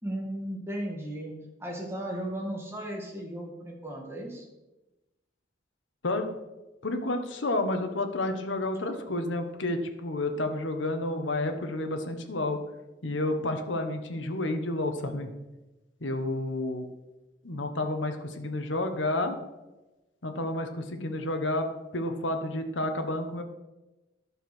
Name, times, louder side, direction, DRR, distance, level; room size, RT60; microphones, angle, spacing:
voice 1, 0.0-1.3 1.6-4.4, right 1 dB, 15° right, -1 dB, 2.2 m, -35 dB
voice 2, 6.8-12.6 13.0-15.3 16.0-16.9 17.4-19.4 20.2-21.7 21.9-23.4, left 2 dB, 90° left, 6 dB, 1.3 m, -30 dB
11.5 x 6.9 x 6.2 m, 1.1 s
head